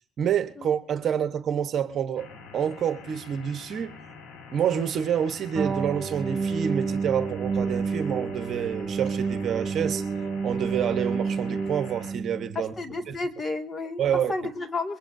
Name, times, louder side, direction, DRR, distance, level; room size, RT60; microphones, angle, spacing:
voice 1, 0.2-2.3 2.5-4.0 4.5-10.1 10.4-12.7 13.1-13.2 14.0-14.3, right 8 dB, 50° right, 1.2 m, -28 dB
sound 1, 2.2-12.1, left 4 dB, 70° left, 4.6 m, -46 dB
sound 2, 5.5-12.6, right 5 dB, 35° right, 0.8 m, -29 dB
voice 2, 12.5-14.0 14.3-15.0, left 3 dB, 30° left, 2.3 m, -31 dB
22.5 x 19.0 x 2.8 m
supercardioid pair, 95°, 0 cm